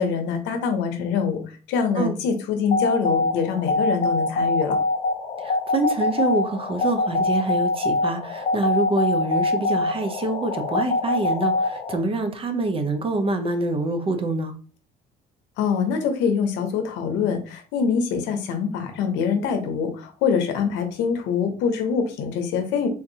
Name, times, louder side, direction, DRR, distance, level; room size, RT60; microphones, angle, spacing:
voice 1, 0.0-1.4 1.7-4.8 15.6-22.9, left 6 dB, 85° left, 6 dB, 0.7 m, -24 dB
sound 1, 2.7-12.0, left 2 dB, 45° left, 0.8 m, -24 dB
voice 2, 5.4-14.6, right 2 dB, 30° right, 7 dB, 0.6 m, -26 dB
3.6 x 2.6 x 2.7 m, 0.38 s
cardioid pair, 100°, 18 cm